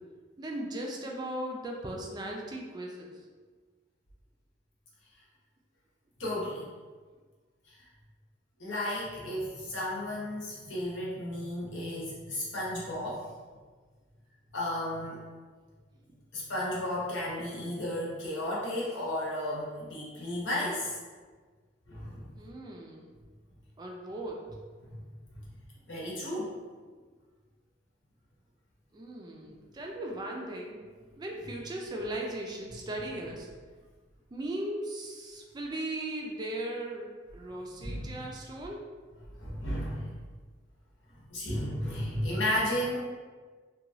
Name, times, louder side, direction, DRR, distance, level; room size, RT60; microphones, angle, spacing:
voice 1, 0.4-3.1 22.3-23.1 23.8-24.4 28.9-30.8 31.2-33.5 34.3-37.1 37.3-38.8, right 1 dB, 20° right, -1 dB, 0.3 m, -37 dB
voice 2, 6.2-6.7 7.7-7.8 8.6-13.3 14.5-15.2 16.3-21.0 21.9-22.2 24.8-25.0 25.9-26.5 37.8-38.1 39.4-40.1 41.3-43.0, left 1 dB, 85° left, -6 dB, 0.9 m, -33 dB
2.9 x 2.2 x 2.6 m, 1.5 s
head